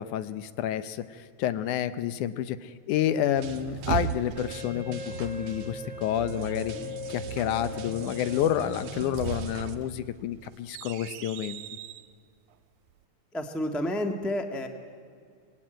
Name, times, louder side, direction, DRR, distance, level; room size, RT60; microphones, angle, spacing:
voice 1, 0.0-6.7 7.1-11.6, left 11 dB, 80° left, 13 dB, 2.3 m, -29 dB
sound 1, 3.2-4.7 8.8-12.1, right 9 dB, 85° right, 2.3 m, -36 dB
sound 2, 3.4-9.8, right 5 dB, 55° right, 1.8 m, -41 dB
Wind instrument woodwind instrument, 4.3-9.4, left 4 dB, 20° right, 4.7 m, -41 dB
voice 2, 13.3-14.7, left 1 dB, ahead, 5 dB, 0.4 m, -30 dB
26.0 x 20.5 x 9.0 m, 2.1 s
omnidirectional pair, 3.5 m